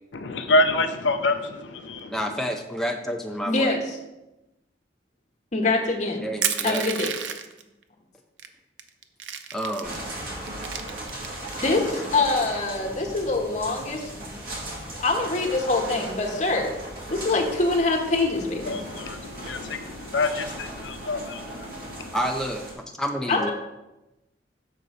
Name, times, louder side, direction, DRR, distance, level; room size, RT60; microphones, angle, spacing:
voice 1, 0.1-2.2 18.6-22.2, left 2 dB, 80° left, 0.5 m, -27 dB
voice 2, 2.1-3.7 6.2-6.9 9.5-10.0 22.1-23.5, equal, ahead, 0.4 m, -29 dB
voice 3, 3.5-4.0 5.5-6.3 6.6-7.1 11.5-14.3 14.9-16.7 17.1-18.8 23.3-23.5, left 3 dB, 40° left, 1.1 m, -24 dB
Crushing, 6.4-7.6 8.4-8.5 8.8-10.0 10.5-11.5, right 8 dB, 90° right, 0.6 m, -30 dB
sound 1, 9.8-22.7, right 1 dB, 50° right, 2.2 m, -37 dB
6.8 x 3.9 x 6.3 m
head